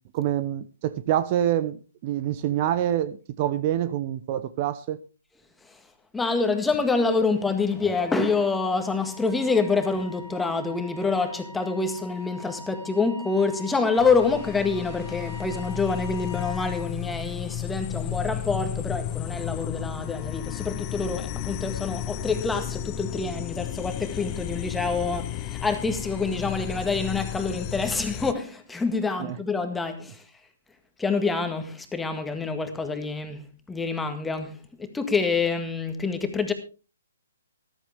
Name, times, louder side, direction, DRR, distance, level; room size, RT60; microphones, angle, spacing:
voice 1, 0.1-1.8 2.0-5.0 29.2-29.4, right 11 dB, 35° right, 0.8 m, -26 dB
voice 2, 6.1-30.2 31.0-36.5, left 4 dB, 5° left, 1.8 m, -26 dB
Wind instrument woodwind instrument, 7.5-16.9, left 2 dB, 80° right, 3.5 m, -43 dB
sound 1, 14.0-28.3, left 11 dB, 30° left, 0.7 m, -33 dB
14.0 x 13.5 x 3.5 m
hypercardioid pair, 135°, 0 cm